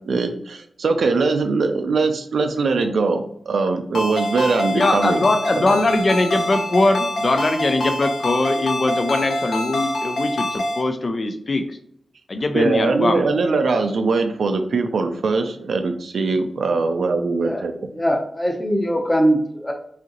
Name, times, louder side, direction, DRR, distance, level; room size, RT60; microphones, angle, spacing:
voice 1, 0.0-5.2 5.7-5.8 12.5-17.7, right 4 dB, 75° right, 7 dB, 0.5 m, -21 dB
Ringtone, 3.9-10.8, left 1 dB, 80° left, 0.8 m, -25 dB
voice 2, 4.7-11.6 12.3-13.3, left 2 dB, 40° left, 6 dB, 0.4 m, -21 dB
voice 3, 17.4-19.7, equal, 15° left, 2 dB, 0.7 m, -22 dB
4.9 x 2.8 x 2.9 m, 0.68 s
wide cardioid pair, 120°, 0 cm